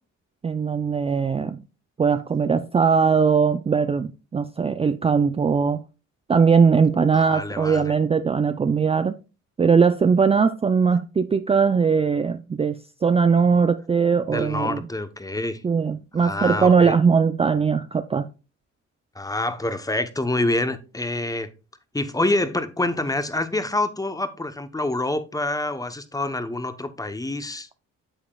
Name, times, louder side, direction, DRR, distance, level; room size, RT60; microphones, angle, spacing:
voice 1, 0.4-1.6 2.0-5.8 6.3-9.2 9.6-14.8 15.6-18.3, right 5 dB, 20° right, 0.4 m, -20 dB
voice 2, 7.1-7.9 14.3-15.6 16.2-17.0 19.1-21.5 21.9-27.7, left 2 dB, 10° left, 0.8 m, -26 dB
8.7 x 7.2 x 2.3 m
cardioid pair, 90°, 30 cm